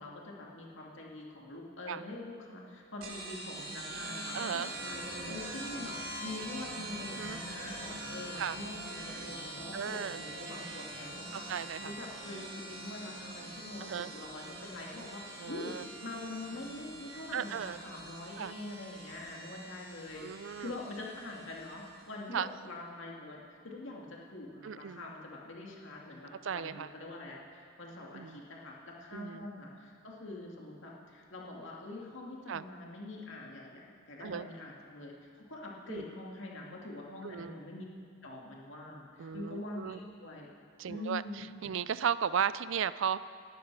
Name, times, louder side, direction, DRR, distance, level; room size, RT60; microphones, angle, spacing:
voice 1, 0.0-37.9 38.2-40.5 40.9-41.7, left 2 dB, 65° left, -2 dB, 2.3 m, -44 dB
sound 1, 3.0-22.2, right 1 dB, 50° right, 2.0 m, -44 dB
voice 2, 4.3-4.7 7.2-7.4 8.4-8.6 9.7-10.2 11.3-11.9 13.8-14.1 15.4-15.8 17.3-17.8 18.4-18.5 20.2-20.7 22.3-22.5 24.6-25.0 26.4-26.9 28.1-28.4 29.1-29.5 32.5-32.6 34.2-34.5 35.9-36.0 37.2-37.6 39.2-40.0 40.8-43.2, right 8 dB, 65° right, 16 dB, 0.4 m, -35 dB
18.5 x 12.5 x 4.7 m, 2.2 s
head